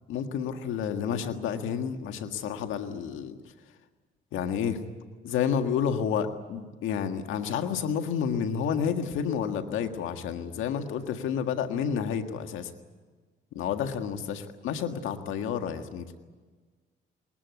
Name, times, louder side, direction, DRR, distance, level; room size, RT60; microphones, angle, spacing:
voice 1, 0.1-3.5 4.3-4.8 5.2-12.7 13.5-16.1, left 7 dB, 90° left, 6 dB, 1.8 m, -30 dB
21.5 x 20.5 x 9.5 m, 1.4 s
cardioid pair, 90°, 20 cm